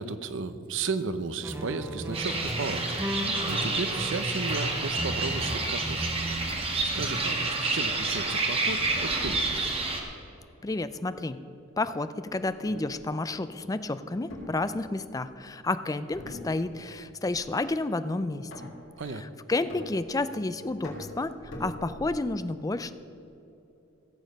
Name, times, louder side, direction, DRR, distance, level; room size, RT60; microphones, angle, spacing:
voice 1, 0.0-6.1 6.9-9.7 19.0-19.3, right 4 dB, 65° right, 12 dB, 0.7 m, -34 dB
sound 1, 1.4-6.5 7.0-7.4, right 1 dB, 10° right, 0.8 m, -35 dB
sound 2, 2.1-10.0, right 3 dB, 30° right, 1.6 m, -29 dB
voice 2, 10.6-11.4 11.8-18.5 19.5-22.9, left 2 dB, 15° left, 12 dB, 0.4 m, -30 dB
sound 3, 12.6-13.0 14.3-15.3 16.1-16.9 17.2-17.6 18.5-19.0 19.7-20.4 20.8-22.3, left 1 dB, 75° left, 3.2 m, -42 dB
15.5 x 7.2 x 6.5 m, 2.9 s
head